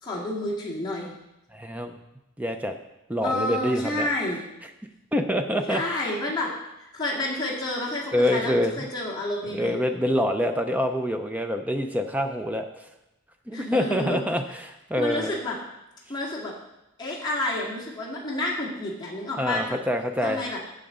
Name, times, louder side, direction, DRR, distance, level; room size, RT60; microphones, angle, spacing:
voice 1, 0.0-1.1 3.2-4.4 5.7-6.5 6.9-9.7 13.5-14.2 15.0-15.6 16.1-16.5 17.0-19.8 20.2-20.6, left 1 dB, 20° left, -5 dB, 2.0 m, -29 dB
voice 2, 1.5-2.0 2.4-2.7 3.1-4.1 5.1-5.8 8.1-8.9 9.5-12.7 13.5-15.3 19.4-20.4, equal, 5° right, 6 dB, 0.5 m, -26 dB
15.0 x 5.1 x 3.8 m, 0.90 s
head